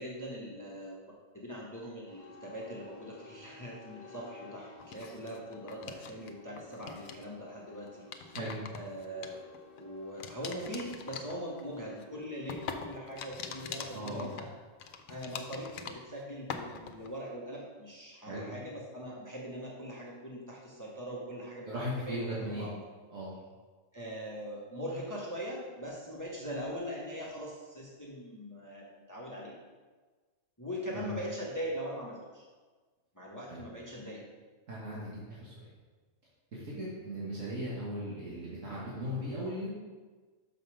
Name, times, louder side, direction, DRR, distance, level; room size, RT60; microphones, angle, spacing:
voice 1, 0.0-8.4 8.7-9.4 9.8-14.5 15.1-21.7 22.0-22.8 23.9-29.5 30.6-32.5 33.1-34.2 36.7-36.9, equal, 15° left, -3 dB, 1.1 m, -41 dB
sound 1, 2.1-16.3, left 4 dB, 45° left, 1.4 m, -56 dB
sound 2, 4.8-6.3 6.6-7.3 7.9-9.8 10.2-16.2 16.5-17.1, left 6 dB, 75° left, 1.0 m, -43 dB
voice 2, 13.9-14.3 18.3-18.5 21.6-22.7 23.1-23.3 30.9-31.1 33.5-33.6 34.7-35.7 36.5-39.7, equal, 65° right, -8 dB, 2.0 m, -37 dB
6.0 x 5.4 x 6.3 m, 1.4 s
omnidirectional pair, 1.4 m